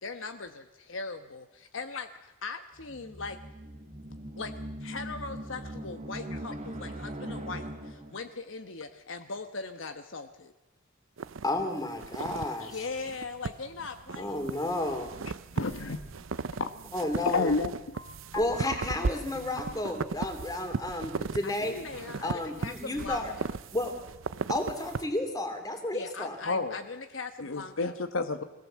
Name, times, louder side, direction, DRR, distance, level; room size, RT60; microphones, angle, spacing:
voice 1, 0.0-3.4 4.4-4.5 4.8-10.5 12.7-14.5 21.4-23.5 25.9-27.9, left 4 dB, 70° left, 7 dB, 1.2 m, -40 dB
sound 1, 2.8-8.3, right 1 dB, 35° right, 2.7 m, -40 dB
sound 2, 11.2-25.1, right 4 dB, 75° right, 0.6 m, -37 dB
voice 2, 11.4-12.8 14.1-15.1 16.9-17.5 17.9-21.7 22.2-23.3 23.7-23.9 24.5-26.4, left 1 dB, 20° left, 5 dB, 2.9 m, -32 dB
voice 3, 15.5-16.0 16.6-16.7 17.2-17.7 26.4-26.8 27.4-28.4, left 3 dB, 90° left, 8 dB, 1.3 m, -29 dB
23.0 x 17.0 x 7.6 m, 1.1 s
head